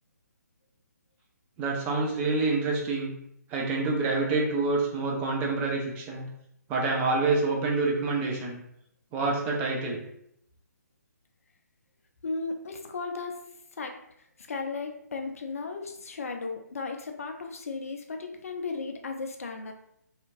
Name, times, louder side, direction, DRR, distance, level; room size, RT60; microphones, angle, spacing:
voice 1, 1.6-3.1 3.5-6.3 6.7-8.6 9.1-10.0, right 3 dB, 15° right, -1 dB, 0.4 m, -27 dB
voice 2, 12.2-13.4 13.7-19.7, left 4 dB, 55° left, 4 dB, 0.5 m, -35 dB
2.7 x 2.4 x 2.9 m, 0.75 s
figure-of-eight pair, 140°, 10 cm